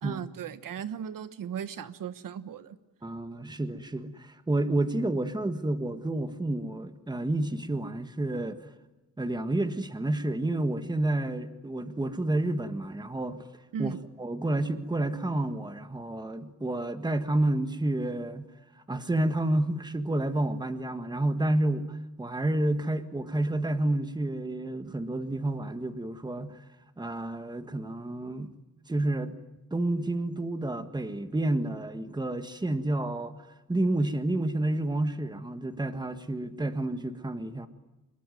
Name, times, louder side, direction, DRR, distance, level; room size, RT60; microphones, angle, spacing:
voice 1, 0.0-2.8 13.7-14.0, right 8 dB, 85° right, 1.3 m, -36 dB
voice 2, 3.0-8.6 9.2-13.5 13.8-18.5 18.9-26.6 27.0-28.5 28.9-29.4 29.7-33.4 33.7-37.7, right 1 dB, 15° right, 1.6 m, -30 dB
25.5 x 22.0 x 9.3 m
wide cardioid pair, 140°, 32 cm